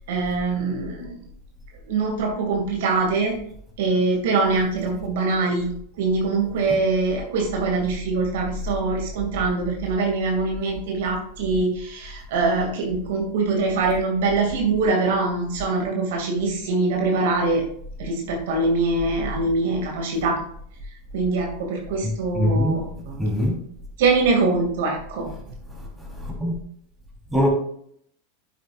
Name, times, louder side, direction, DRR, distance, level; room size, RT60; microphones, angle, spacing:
voice 1, 0.1-1.2 1.9-3.4 3.8-5.7 6.0-17.7 18.0-20.4 21.1-23.2 24.0-25.3, right 3 dB, 65° right, 1 dB, 2.4 m, -23 dB
voice 2, 22.0-22.8 23.2-23.5 26.4-26.5 27.3-27.5, left 1 dB, 5° right, -4 dB, 3.8 m, -22 dB
11.0 x 8.3 x 2.5 m, 0.66 s
hypercardioid pair, 95°, 0 cm